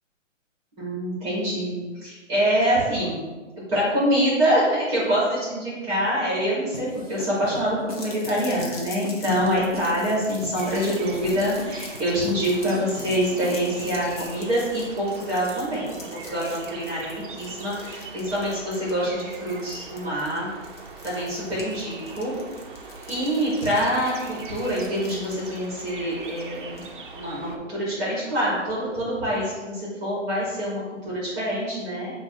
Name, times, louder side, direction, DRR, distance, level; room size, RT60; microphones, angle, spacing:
voice 1, 0.8-3.2 3.7-15.9 16.3-20.5 21.0-22.4 23.1-26.9 27.1-32.1, equal, 10° right, -7 dB, 1.1 m, -25 dB
sound 1, 6.7-14.1, left 1 dB, 30° left, 0.4 m, -40 dB
sound 2, 7.9-26.9, left 3 dB, 50° left, 0.9 m, -44 dB
sound 3, 10.6-27.6, right 4 dB, 45° right, 0.5 m, -41 dB
6.4 x 2.5 x 3.0 m, 1.3 s
hypercardioid pair, 165°, 38 cm